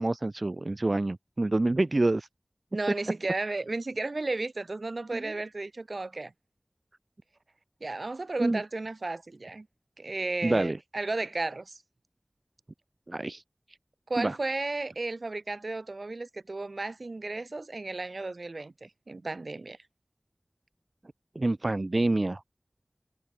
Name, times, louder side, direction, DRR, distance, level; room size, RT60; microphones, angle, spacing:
voice 1, 0.0-2.3 5.1-5.2 8.4-8.6 10.4-10.8 13.1-13.4 14.2-14.4 21.4-22.4, right 2 dB, 55° right, 0.7 m, -27 dB
voice 2, 2.7-6.3 7.8-9.7 10.0-11.8 14.1-19.8, right 2 dB, 80° right, 1.6 m, -34 dB
wide cardioid pair, 45°, 0 cm